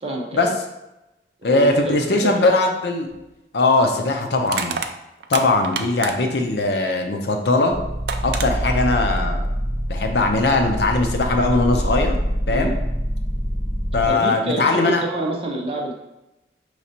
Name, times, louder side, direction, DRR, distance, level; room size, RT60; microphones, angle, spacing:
voice 1, 0.0-0.5 1.4-2.6 12.5-12.7 14.1-16.0, right 2 dB, 30° right, 0 dB, 0.7 m, -27 dB
voice 2, 1.4-3.1 3.5-4.8 5.3-7.7 8.2-9.4 9.9-12.2 12.5-12.7 13.9-15.0, left 2 dB, 70° left, 3 dB, 0.6 m, -20 dB
Crushing, 3.1-3.2 4.4-6.4 7.6-7.7 8.1-8.5, right 6 dB, 65° right, 0.3 m, -28 dB
sound 1, 7.7-14.1, equal, 45° left, 1.2 m, -25 dB
5.8 x 3.2 x 2.8 m, 0.94 s
head